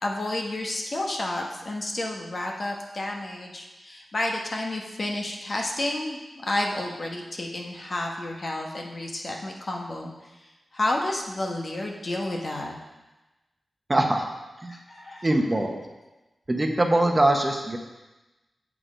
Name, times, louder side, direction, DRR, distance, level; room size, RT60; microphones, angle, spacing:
voice 1, 0.0-12.7 14.7-15.3, left 1 dB, 50° left, 0 dB, 1.3 m, -31 dB
voice 2, 13.9-14.2 14.6-14.7 15.2-15.8 16.5-17.8, right 1 dB, 25° right, 3 dB, 1.0 m, -22 dB
7.6 x 6.7 x 5.1 m, 1.1 s
wide cardioid pair, 75°, 0 cm